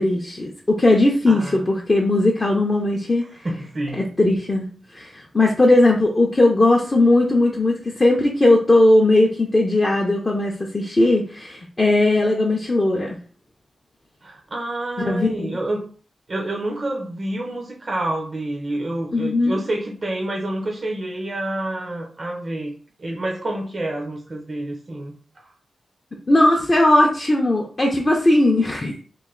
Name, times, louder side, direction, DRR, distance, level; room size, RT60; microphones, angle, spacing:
voice 1, 0.0-3.2 3.9-4.7 4.9-13.2 15.0-15.5 19.1-19.6 26.3-29.0, left 2 dB, 25° left, -1 dB, 0.5 m, -18 dB
voice 2, 1.3-1.6 3.2-4.0 14.2-15.9 16.3-25.5, right 1 dB, 35° right, 1 dB, 0.5 m, -28 dB
3.0 x 2.5 x 3.7 m, 0.41 s
wide cardioid pair, 170°, 0 cm